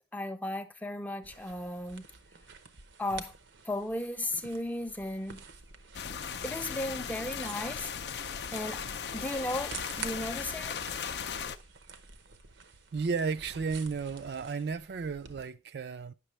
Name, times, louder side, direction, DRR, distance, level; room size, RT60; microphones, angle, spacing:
voice 1, 0.1-2.1 3.0-3.3 3.7-5.4 6.4-7.9 8.5-8.8 9.1-10.9, left 1 dB, 10° left, 0.5 m, -35 dB
sound 1, 1.2-15.5, right 5 dB, 90° right, 0.8 m, -49 dB
sound 2, 5.9-11.6, left 7 dB, 65° left, 0.4 m, -37 dB
voice 2, 12.9-16.1, right 5 dB, 60° right, 0.4 m, -33 dB
9.1 x 6.0 x 3.2 m
head